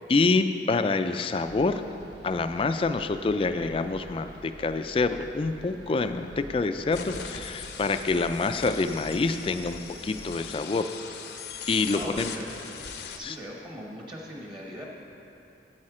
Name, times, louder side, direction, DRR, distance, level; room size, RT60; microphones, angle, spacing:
voice 1, 0.1-1.8 2.2-10.9 11.7-12.3 13.2-13.3, left 3 dB, 30° left, 9 dB, 0.3 m, -26 dB
sound 1, 1.4-10.3, equal, 80° right, 1.0 m, -48 dB
sound 2, 6.9-13.2, left 6 dB, 65° left, 0.6 m, -40 dB
voice 2, 11.9-12.5 13.1-14.8, equal, 25° right, -2 dB, 1.1 m, -39 dB
8.7 x 8.5 x 4.9 m, 2.8 s
head